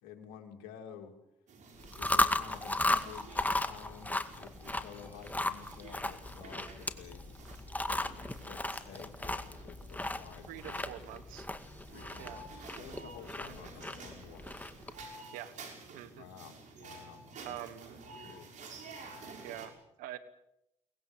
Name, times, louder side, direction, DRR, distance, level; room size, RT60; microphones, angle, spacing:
voice 1, 0.0-1.1 2.0-7.2 7.8-11.0 11.9-14.5 16.2-17.6 18.2-18.5, left 8 dB, 85° left, 4 dB, 3.0 m, -51 dB
sound 1, 1.5-19.7, right 3 dB, 65° right, 5.8 m, -51 dB
Chewing mastication, 1.8-15.0, left 2 dB, 10° left, 2.1 m, -35 dB
voice 2, 10.5-11.5 12.2-12.4 13.5-13.6 15.3-15.6 15.9-16.2 17.4-17.9 19.4-20.2, right 12 dB, 85° right, 13 dB, 1.4 m, -45 dB
23.5 x 19.5 x 7.4 m, 0.83 s
supercardioid pair, 65°, 14 cm